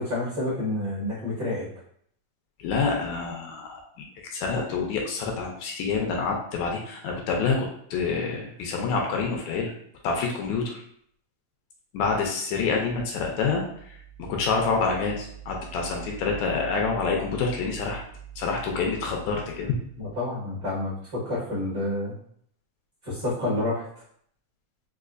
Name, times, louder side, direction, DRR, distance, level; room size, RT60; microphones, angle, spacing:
voice 1, 0.0-1.7 20.0-22.1 23.0-23.8, left 2 dB, 45° right, -8 dB, 1.5 m, -29 dB
voice 2, 2.6-4.1 4.3-9.7 10.0-10.8 11.9-18.0 18.4-19.8, left 4 dB, 80° left, 1 dB, 1.8 m, -27 dB
4.8 x 2.4 x 2.4 m, 0.66 s
omnidirectional pair, 3.4 m